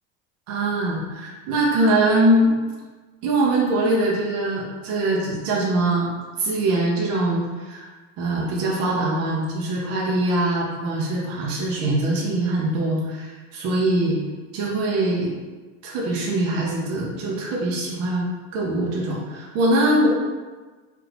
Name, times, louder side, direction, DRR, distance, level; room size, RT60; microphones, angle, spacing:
voice 1, 0.5-2.6 3.2-6.1 6.4-7.9 8.2-14.2 14.5-15.3 15.8-20.1, right 1 dB, 40° right, -3 dB, 0.6 m, -22 dB
3.0 x 2.5 x 3.2 m, 1.3 s
supercardioid pair, 150°, 39 cm